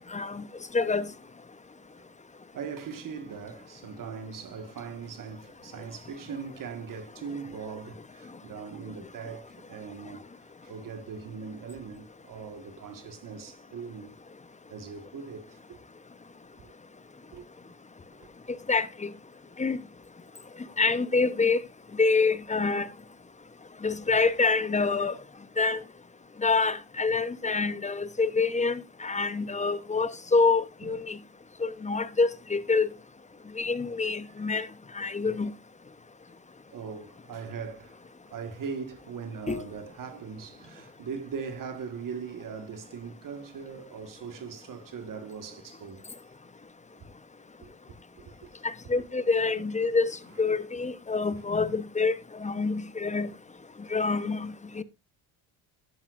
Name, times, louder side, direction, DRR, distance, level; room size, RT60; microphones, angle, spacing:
voice 1, 0.1-0.4 0.7-1.1 18.7-19.1 19.6-19.8 20.8-21.6 22.0-22.9 23.8-25.1 25.6-25.8 26.4-31.2 31.6-32.9 33.6-34.7 35.0-35.5 39.5-39.6 48.6-50.1 50.4-52.1 52.4-53.3 53.9-54.8, left 4 dB, 15° left, 0.9 m, -26 dB
voice 2, 2.5-14.2 14.7-15.8 16.6-16.7 17.3-17.5 30.8-30.9 36.7-38.0 38.3-46.1 47.6-47.7 48.2-48.5, right 6 dB, 50° right, 1.8 m, -40 dB
11.5 x 10.5 x 2.6 m
supercardioid pair, 75°, 41 cm